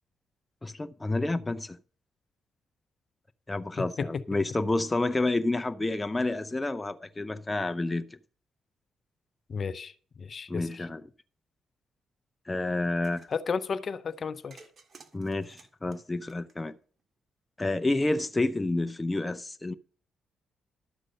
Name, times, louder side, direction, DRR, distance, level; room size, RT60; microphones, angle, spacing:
voice 1, 0.6-1.8 3.5-8.2 10.5-11.0 12.5-13.3 15.1-16.7 17.6-19.7, left 2 dB, 20° left, 0.7 m, -29 dB
voice 2, 3.8-4.2 9.5-9.9 10.2-10.7 13.3-14.6, left 5 dB, 55° left, 0.7 m, -33 dB
sound 1, 12.8-13.4 14.5-17.0, right 4 dB, 45° right, 1.9 m, -55 dB
12.5 x 7.8 x 5.4 m
supercardioid pair, 60°, 0 cm